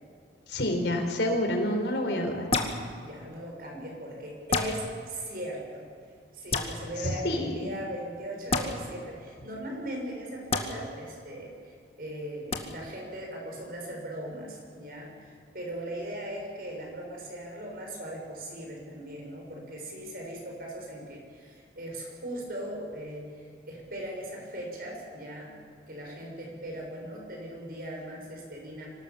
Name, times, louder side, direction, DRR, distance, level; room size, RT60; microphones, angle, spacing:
voice 1, 0.5-2.5 7.0-7.7, left 1 dB, 75° left, 4 dB, 4.2 m, -28 dB
sound 1, 2.5-2.8 4.5-4.7 6.5-6.7 8.5-8.7 10.5-10.6 12.5-12.6, left 3 dB, 35° left, 1.9 m, -26 dB
voice 2, 3.0-5.8 6.3-23.3 23.7-25.6 25.9-28.9, right 1 dB, 50° right, 0 dB, 6.8 m, -39 dB
25.0 x 18.5 x 7.3 m, 2.2 s
head